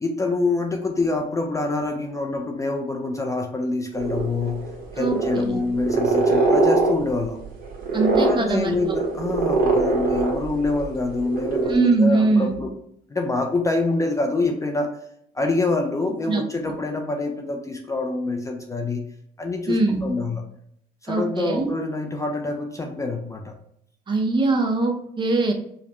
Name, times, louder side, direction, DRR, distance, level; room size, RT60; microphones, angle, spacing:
voice 1, 0.0-4.6 4.9-7.4 8.2-12.7 13.1-15.0 15.3-19.0 19.4-20.4 21.0-23.5, left 3 dB, 20° left, 3 dB, 0.4 m, -26 dB
sound 1, 3.9-10.9 11.2-11.7, right 3 dB, 60° right, 1.2 m, -22 dB
voice 2, 5.0-5.6 7.9-8.8 11.7-12.6 16.3-16.7 19.7-20.2 21.1-21.7 24.1-25.5, right 3 dB, 30° right, 3 dB, 0.7 m, -22 dB
4.9 x 2.1 x 3.0 m, 0.71 s
cardioid pair, 110°, 17 cm